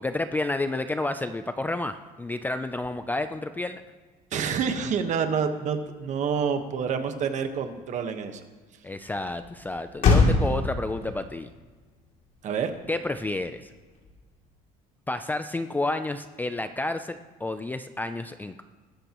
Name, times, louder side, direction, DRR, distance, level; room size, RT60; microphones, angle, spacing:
voice 1, 0.0-3.8 8.8-11.5 12.9-13.7 15.1-18.6, left 2 dB, 10° left, 9 dB, 0.4 m, -30 dB
voice 2, 4.3-8.4 12.4-12.7, right 6 dB, 45° right, 7 dB, 1.3 m, -28 dB
Motor vehicle (road), 6.2-14.6, left 3 dB, 55° left, 2.8 m, -29 dB
20.0 x 13.5 x 3.0 m, 1.4 s
cardioid pair, 140°, 17 cm